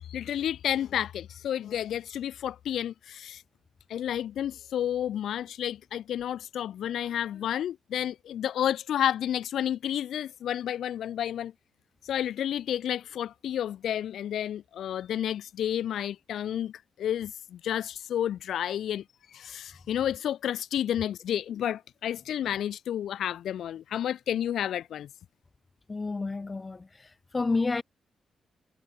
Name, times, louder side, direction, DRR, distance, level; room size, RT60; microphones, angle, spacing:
voice 1, 0.1-3.4 3.9-11.5 12.0-16.7 17.0-19.0 19.3-25.1, left 10 dB, 80° left, 1.3 m, -31 dB
voice 2, 25.9-26.9 27.3-27.8, left 3 dB, 35° left, 3.7 m, -29 dB
supercardioid pair, 60°, 0 cm